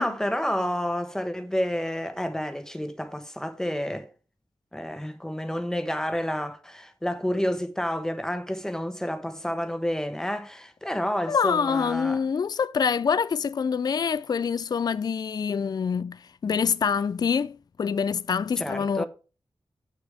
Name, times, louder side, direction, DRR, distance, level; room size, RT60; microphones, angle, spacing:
voice 1, 0.0-4.1 4.7-12.2 18.6-19.1, equal, 5° left, 1.2 m, -29 dB
voice 2, 11.3-16.2 16.4-19.1, left 6 dB, 45° left, 0.4 m, -25 dB
8.3 x 6.6 x 5.0 m
wide cardioid pair, 110°, 9 cm